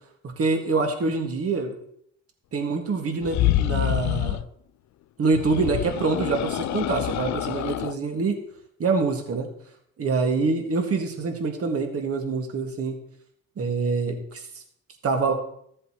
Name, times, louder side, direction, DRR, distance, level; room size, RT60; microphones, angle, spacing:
voice 1, 0.2-1.7 2.5-4.4 5.2-8.4 8.8-9.5 10.0-13.0 13.6-14.4 15.0-15.3, right 4 dB, 50° right, 3 dB, 1.9 m, -25 dB
sound 1, 3.2-4.5 5.3-8.0, left 14 dB, 65° left, 0.5 m, -26 dB
14.0 x 7.7 x 3.1 m, 0.68 s
cardioid pair, 90°, 30 cm